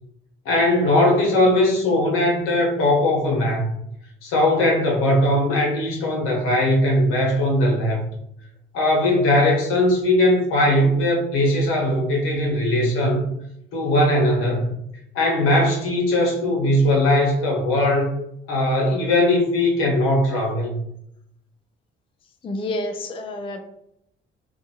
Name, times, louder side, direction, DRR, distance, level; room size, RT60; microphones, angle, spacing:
voice 1, 0.4-3.7 4.2-8.1 8.7-13.3 13.7-14.7 15.1-18.2 18.5-20.8, left 1 dB, 85° left, -1 dB, 1.0 m, -19 dB
voice 2, 22.4-23.6, left 1 dB, 25° left, 5 dB, 0.4 m, -29 dB
2.5 x 2.4 x 2.7 m, 0.76 s
cardioid pair, 90°, 21 cm